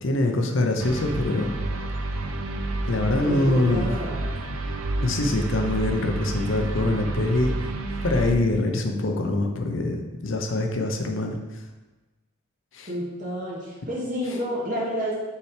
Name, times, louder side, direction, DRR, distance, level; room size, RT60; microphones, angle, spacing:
voice 1, 0.0-1.6 2.8-3.9 5.0-7.5 8.0-11.4 12.7-12.9, left 2 dB, 70° left, 3 dB, 0.8 m, -24 dB
sound 1, 0.8-8.3, right 2 dB, 90° right, 0.6 m, -30 dB
voice 2, 3.2-4.5 12.8-15.1, equal, 40° right, -6 dB, 2.2 m, -30 dB
5.7 x 4.5 x 5.0 m, 1.2 s
head